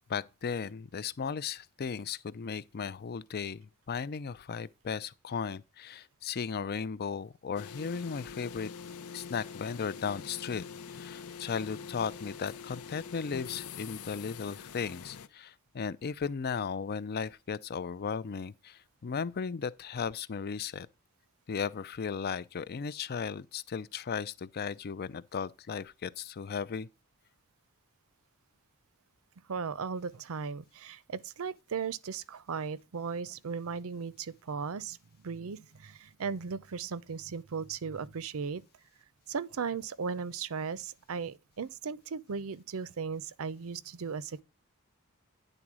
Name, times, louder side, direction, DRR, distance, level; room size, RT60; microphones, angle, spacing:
voice 1, 0.1-8.7 9.1-20.9 21.5-26.9, left 6 dB, 45° left, 0.5 m, -36 dB
sound 1, 7.6-15.3, left 6 dB, 80° left, 0.7 m, -44 dB
voice 2, 29.5-35.0 35.2-38.6 39.3-44.4, right 5 dB, 70° right, 0.6 m, -37 dB
10.0 x 3.9 x 6.1 m
head